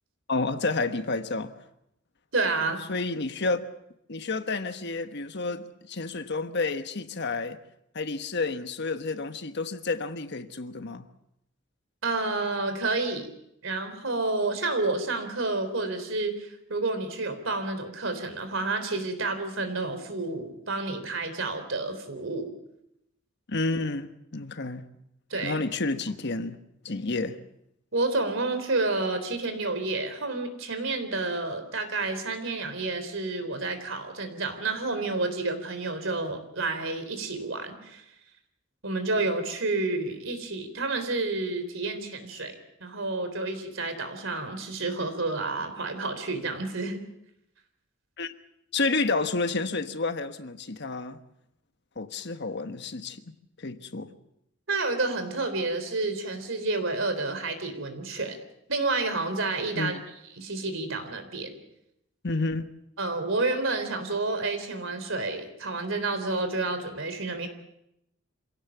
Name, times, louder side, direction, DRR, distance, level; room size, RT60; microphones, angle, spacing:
voice 1, 0.3-1.5 2.9-3.6 4.1-7.6 7.9-11.1 23.5-24.9 25.4-26.6 26.8-27.4 48.2-48.3 48.7-51.2 52.0-54.1 59.7-60.0 62.2-62.7, left 3 dB, 60° left, 1.3 m, -30 dB
voice 2, 2.3-2.8 12.0-13.3 13.6-22.5 25.3-25.6 27.9-38.0 38.8-42.6 42.8-47.0 54.7-58.4 58.7-60.0 60.4-61.6 63.0-67.5, right 3 dB, 70° right, 3.8 m, -30 dB
26.5 x 17.0 x 7.3 m
head